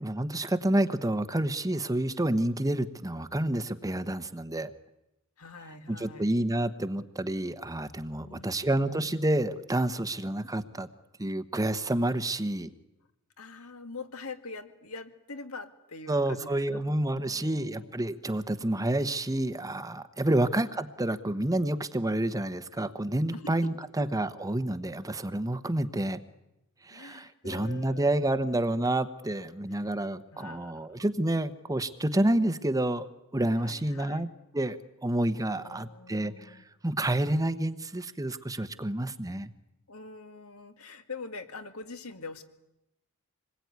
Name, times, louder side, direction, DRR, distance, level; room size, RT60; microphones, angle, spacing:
voice 1, 0.0-4.7 5.9-10.9 11.2-12.7 16.1-26.2 26.8-34.3 34.5-39.5, right 1 dB, 15° right, 11 dB, 1.0 m, -29 dB
voice 2, 5.4-6.3 8.2-9.1 13.4-16.8 17.2-17.9 23.3-23.7 24.0-24.1 26.9-28.5 29.7-29.9 30.3-31.1 33.6-34.3 35.5-36.6 39.9-42.4, left 3 dB, 70° left, 8 dB, 2.1 m, -44 dB
26.5 x 21.0 x 9.5 m, 0.90 s
head